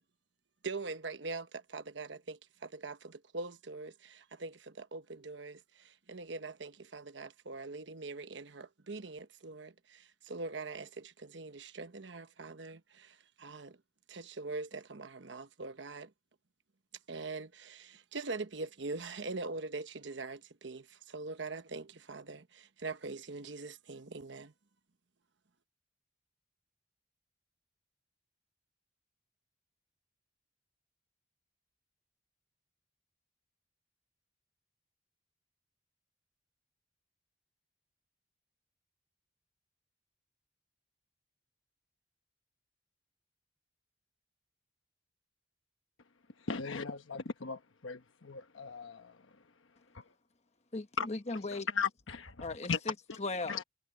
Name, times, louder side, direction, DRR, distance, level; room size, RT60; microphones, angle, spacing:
voice 1, 0.6-13.8 14.1-16.1 17.1-24.5, right 3 dB, 65° right, 1.1 m, -43 dB
voice 2, 46.5-49.1 49.9-50.0 51.0-51.1 51.7-52.8 53.1-53.2 53.5-53.6, left 5 dB, 85° left, 1.1 m, -37 dB
voice 3, 50.7-51.7 52.4-53.6, left 3 dB, 35° left, 1.2 m, -38 dB
head